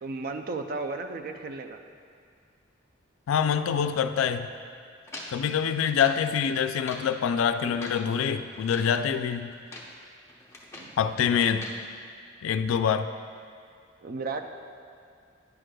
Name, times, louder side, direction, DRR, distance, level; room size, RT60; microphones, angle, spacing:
voice 1, 0.0-1.8 5.3-5.6 9.1-9.2 10.7-10.9 14.0-14.4, right 3 dB, 45° right, 6 dB, 0.4 m, -35 dB
voice 2, 3.3-4.5 5.3-9.5 11.0-11.7 12.4-13.1, left 7 dB, 90° left, 10 dB, 0.3 m, -25 dB
sound 1, 5.1-6.3 6.7-7.1 7.6-8.1 8.5-9.0 9.5-10.0 10.3-11.0 11.4-11.8, left 1 dB, 15° left, 0.6 m, -44 dB
9.7 x 6.3 x 2.2 m, 2.3 s
head